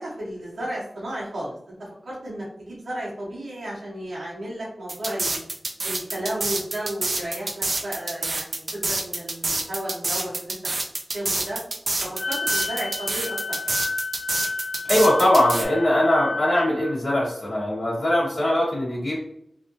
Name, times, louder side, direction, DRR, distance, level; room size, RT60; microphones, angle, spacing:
voice 1, 0.0-1.7 2.0-5.4 5.8-10.6 11.1-11.6 12.0-13.7 18.0-18.1, right 1 dB, 85° right, -8 dB, 1.2 m, -33 dB
sound 1, 4.9-15.6, right 2 dB, 65° right, 0.5 m, -27 dB
Wind instrument woodwind instrument, 12.2-16.9, left 3 dB, 25° left, 1.0 m, -31 dB
voice 2, 14.9-19.1, left 1 dB, 60° left, -9 dB, 1.2 m, -21 dB
3.3 x 2.6 x 2.7 m, 0.72 s
cardioid pair, 55°, 0 cm